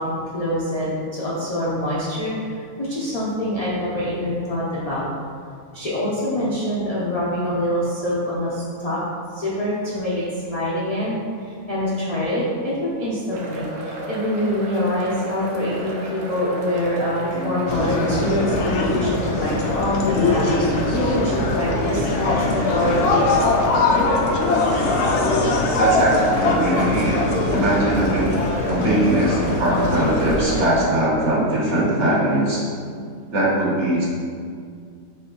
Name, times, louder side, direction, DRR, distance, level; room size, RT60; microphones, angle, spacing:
voice 1, 0.0-5.1 5.7-9.0 9.3-23.9, left 1 dB, 65° left, -8 dB, 0.3 m, -25 dB
sound 1, 13.3-30.8, right 1 dB, 80° right, 1.2 m, -32 dB
sound 2, 17.7-30.7, left 2 dB, 85° left, 1.1 m, -21 dB
voice 2, 25.8-27.2 27.5-28.3 28.7-32.6 33.3-34.1, right 1 dB, 55° right, -5 dB, 1.1 m, -21 dB
4.5 x 3.0 x 3.7 m, 2.2 s
omnidirectional pair, 1.6 m